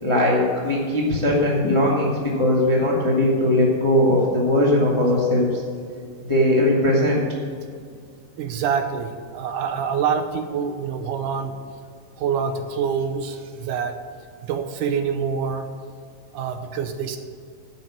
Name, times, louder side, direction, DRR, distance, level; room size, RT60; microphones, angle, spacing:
voice 1, 0.0-5.6 6.3-7.2, left 1 dB, 15° left, -4 dB, 1.2 m, -19 dB
voice 2, 8.4-11.5 12.2-13.9 14.5-15.7 16.3-17.2, right 6 dB, 75° right, 7 dB, 2.1 m, -26 dB
10.5 x 6.0 x 8.6 m, 2.1 s
omnidirectional pair, 3.9 m